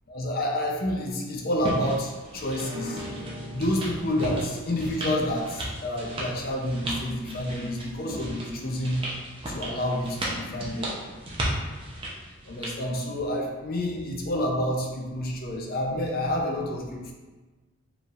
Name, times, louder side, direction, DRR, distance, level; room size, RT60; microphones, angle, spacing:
voice 1, 0.1-3.1 3.5-9.0 9.5-10.9 12.4-17.1, left 1 dB, 40° left, 0 dB, 0.6 m, -29 dB
sound 1, 1.6-12.8, right 1 dB, 25° right, 0.6 m, -35 dB
sound 2, 2.5-7.8, left 1 dB, 75° right, 1.3 m, -43 dB
4.8 x 3.3 x 2.5 m, 1.3 s
head